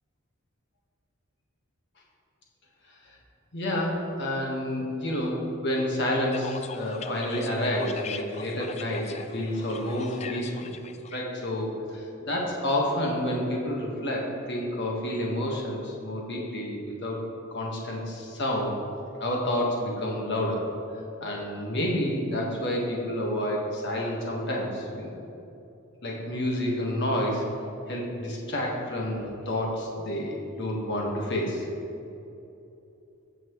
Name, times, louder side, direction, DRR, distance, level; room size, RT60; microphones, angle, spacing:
voice 1, 3.5-10.7 11.1-17.2 17.5-18.7 19.2-20.6 21.2-25.2 26.0-27.4 27.9-31.6, left 1 dB, 55° left, -2 dB, 1.5 m, -29 dB
sound 1, 6.3-11.2, left 5 dB, 30° left, 0.3 m, -41 dB
16.0 x 5.9 x 3.1 m, 2.9 s
head